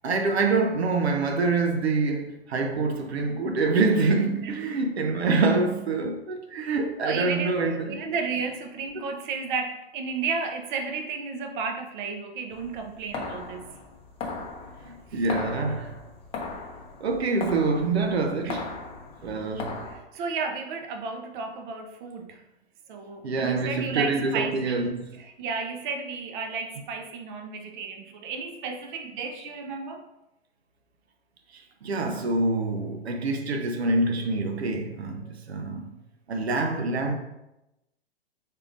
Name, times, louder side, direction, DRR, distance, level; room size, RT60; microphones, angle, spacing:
voice 1, 0.0-8.0 14.8-16.0 17.0-18.7 19.2-19.8 23.2-25.0 31.5-36.0 36.3-37.2, right 3 dB, 85° right, 0.7 m, -26 dB
voice 2, 4.4-4.8 7.0-7.6 7.9-13.7 15.1-15.2 18.4-18.7 19.9-22.4 22.9-24.9 25.2-30.1, right 5 dB, 50° right, 0.8 m, -33 dB
sound 1, 12.5-20.0, left 4 dB, 20° left, 0.6 m, -38 dB
5.4 x 3.7 x 2.5 m
hypercardioid pair, 115°, 31 cm